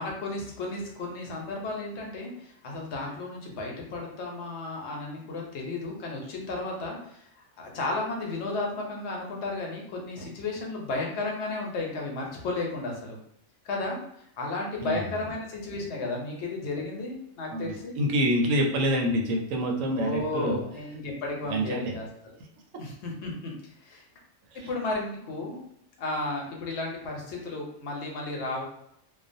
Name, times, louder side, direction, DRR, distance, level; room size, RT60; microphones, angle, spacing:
voice 1, 0.0-7.3 7.6-13.2 13.6-14.0 14.4-18.0 19.9-22.4 22.8-23.5 23.8-24.0 24.5-25.6 26.0-28.6, left 2 dB, 65° left, -1 dB, 0.9 m, -33 dB
voice 2, 17.5-20.6 21.5-21.9 24.5-24.7, equal, 90° right, 2 dB, 1.0 m, -27 dB
2.4 x 2.2 x 2.5 m, 0.73 s
omnidirectional pair, 1.3 m